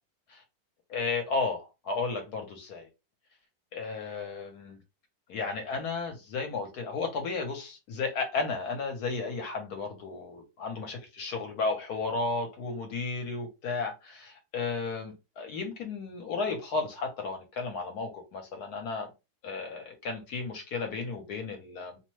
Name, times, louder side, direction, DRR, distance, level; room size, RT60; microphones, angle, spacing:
voice 1, 0.9-2.9 3.7-4.8 5.3-19.1 19.4-22.0, left 4 dB, 65° left, 1.1 m, -33 dB
2.9 x 2.1 x 3.1 m
omnidirectional pair, 2.0 m